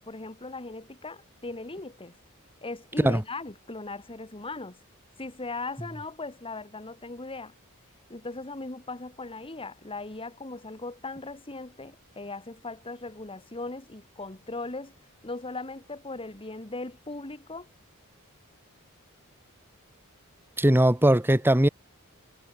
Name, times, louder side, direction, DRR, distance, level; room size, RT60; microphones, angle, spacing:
voice 1, 0.0-2.1 2.6-4.8 5.2-7.6 8.1-15.0 15.2-17.7, left 3 dB, 25° left, 1.9 m, -38 dB
voice 2, 20.6-21.7, right 1 dB, 10° right, 1.4 m, -20 dB
head